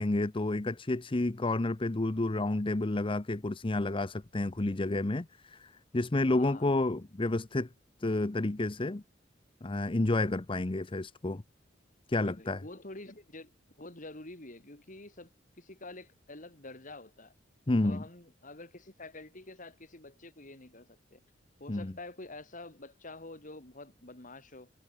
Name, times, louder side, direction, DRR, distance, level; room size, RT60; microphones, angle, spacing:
voice 1, 0.0-7.7 8.0-9.0 9.6-11.4 12.1-12.6 17.7-18.0 21.7-21.9, left 2 dB, 30° left, 0.7 m, -30 dB
voice 2, 4.6-5.1 6.3-6.8 12.1-13.5 13.8-17.3 17.8-21.2 21.6-24.7, left 2 dB, 45° left, 4.2 m, -48 dB
head